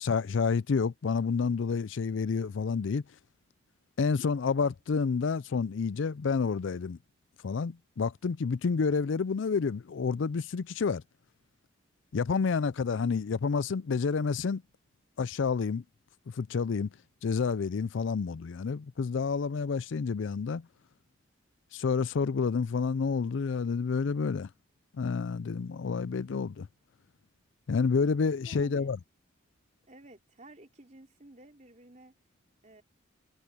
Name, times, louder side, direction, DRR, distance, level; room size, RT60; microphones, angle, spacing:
voice 1, 0.0-3.0 4.0-7.0 7.4-11.0 12.1-14.6 15.2-15.8 16.3-16.9 17.2-20.7 21.7-24.5 24.9-26.7 27.7-29.0, left 5 dB, 70° left, 0.4 m, -29 dB
voice 2, 28.5-28.9 29.9-32.2 32.6-32.8, right 1 dB, 35° right, 3.5 m, -53 dB
head